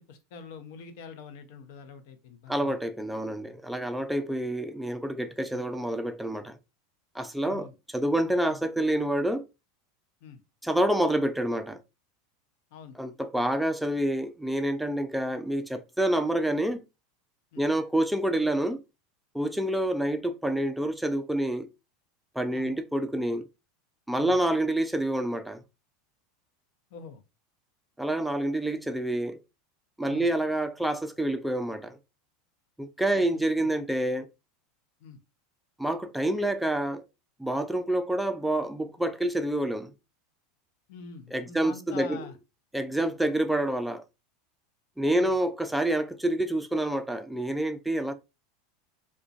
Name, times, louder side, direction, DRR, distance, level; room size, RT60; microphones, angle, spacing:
voice 1, 0.0-2.8 5.5-5.7 7.4-7.7 8.5-8.6 10.2-10.4 12.7-13.0 17.5-17.7 22.5-22.7 24.2-24.4 26.9-27.2 30.1-30.3 33.1-33.4 35.0-35.2 40.9-42.3 45.0-45.4, left 5 dB, 65° left, 0.5 m, -45 dB
voice 2, 2.5-6.6 7.1-9.4 10.6-11.8 13.0-16.8 17.6-18.8 19.3-21.7 22.4-23.5 24.1-25.6 28.0-29.4 30.0-32.0 32.8-34.3 35.8-37.0 37.4-39.9 41.3-42.2 42.7-44.0 45.0-48.1, right 1 dB, 5° right, 0.3 m, -28 dB
2.5 x 2.2 x 2.4 m
hypercardioid pair, 100°, 0 cm